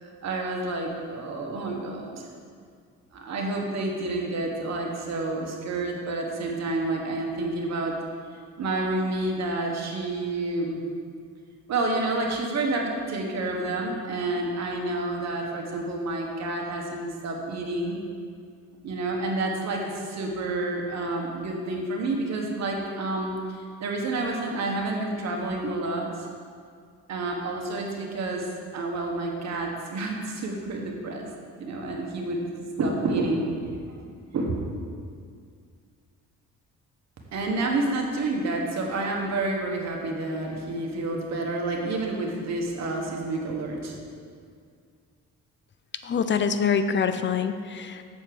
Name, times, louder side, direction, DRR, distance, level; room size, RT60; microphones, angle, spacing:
voice 1, 0.0-2.2 3.1-7.9 8.6-10.8 11.7-18.0 18.8-26.3 27.1-28.5 28.7-31.3 31.6-32.4 32.8-33.5 34.3-34.6 37.3-44.0, right 2 dB, 60° right, 0 dB, 1.4 m, -29 dB
voice 2, 46.0-48.1, left 6 dB, 40° left, 10 dB, 0.5 m, -25 dB
7.2 x 4.4 x 6.6 m, 2.2 s
cardioid pair, 90°, 30 cm